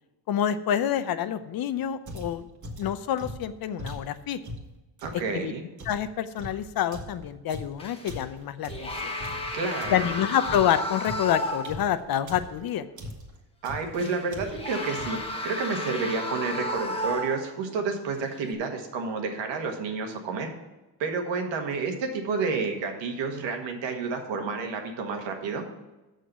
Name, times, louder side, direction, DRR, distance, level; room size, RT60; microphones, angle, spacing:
voice 1, 0.3-2.5 2.8-4.4 5.3-5.5 5.9-9.1 9.9-12.8, left 10 dB, 55° left, 12 dB, 0.7 m, -27 dB
sound 1, 2.1-5.3 5.8-10.2 10.4-12.6 13.0-13.4 13.6-14.0 14.3-14.7 14.9-15.3, equal, 40° right, 1.7 m, -40 dB
voice 2, 5.0-5.6 9.5-10.1 13.6-20.5 21.0-25.6, right 4 dB, 80° right, 3 dB, 1.7 m, -30 dB
sound 2, 7.8-8.2 8.7-11.9 12.3-12.4 13.9-17.6 18.3-18.5, left 1 dB, 15° left, 1.3 m, -33 dB
6.6 x 6.3 x 6.8 m, 1.1 s
cardioid pair, 95°, 43 cm